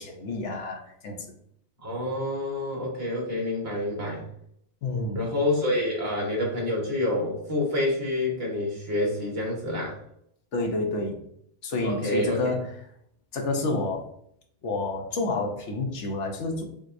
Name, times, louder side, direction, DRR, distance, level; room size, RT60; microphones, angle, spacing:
voice 1, 0.0-1.3 4.8-5.2 10.5-11.2 11.6-12.6 13.3-14.0 14.6-16.6, left 2 dB, 75° left, 2 dB, 1.0 m, -29 dB
voice 2, 1.8-4.2 5.1-10.0 11.8-12.5, left 1 dB, 55° right, -2 dB, 1.4 m, -27 dB
6.1 x 2.3 x 2.6 m, 0.72 s
omnidirectional pair, 1.2 m